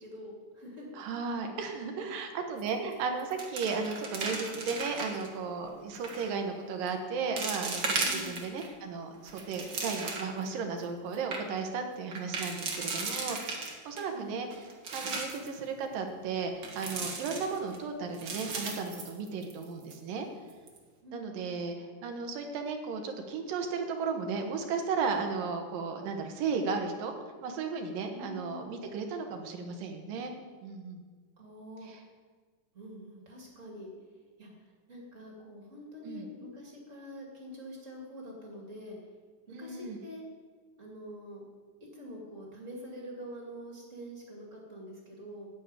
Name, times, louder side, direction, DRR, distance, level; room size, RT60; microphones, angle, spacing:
voice 1, 0.0-1.0 8.0-8.4 14.1-14.4 21.0-21.7 28.1-28.9 31.4-31.9 32.7-33.9 34.4-39.0 39.5-40.2 40.8-41.4 41.9-45.5, equal, 25° right, -2 dB, 2.2 m, -45 dB
voice 2, 1.0-14.5 14.9-20.3 21.1-21.7 22.0-27.1 27.4-30.3 30.6-31.0 31.9-32.0 36.0-36.3 39.5-40.0, right 5 dB, 85° right, 4 dB, 2.9 m, -35 dB
sound 1, 2.6-2.9 3.2-5.3 5.9-6.3 6.9-7.0 7.4-8.7 9.1-10.4 10.8-10.9 11.1-11.4 12.1-14.0 14.5-15.5 16.6-17.8 18.1-19.6 19.9-20.0 20.5-20.8, right 3 dB, 45° right, 1.6 m, -36 dB
9.1 x 7.3 x 8.9 m, 1.5 s
omnidirectional pair, 3.8 m